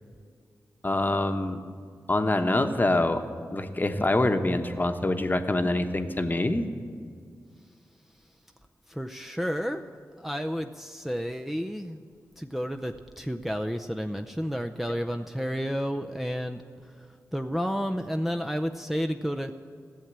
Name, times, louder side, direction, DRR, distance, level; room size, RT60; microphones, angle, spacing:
voice 1, 0.8-1.6 2.1-3.2 3.5-6.6, left 2 dB, 30° left, 7 dB, 1.0 m, -25 dB
voice 2, 8.9-9.9 10.2-12.0 12.4-17.1 17.3-19.5, equal, 5° right, 4 dB, 0.6 m, -31 dB
14.5 x 7.4 x 8.8 m, 2.1 s
cardioid pair, 55°, 6 cm